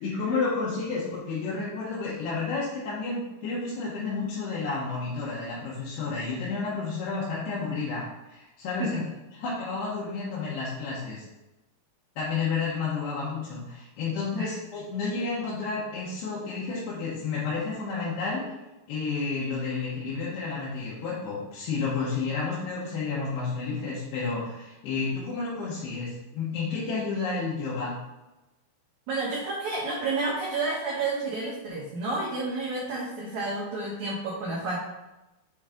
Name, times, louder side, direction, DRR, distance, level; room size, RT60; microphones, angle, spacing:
voice 1, 0.0-9.0 9.3-11.3 12.2-18.4 18.9-28.0, left 4 dB, 75° left, -8 dB, 3.2 m, -31 dB
voice 2, 29.1-34.8, right 3 dB, 75° right, -5 dB, 1.7 m, -30 dB
7.2 x 3.9 x 3.6 m, 1.0 s
omnidirectional pair, 4.8 m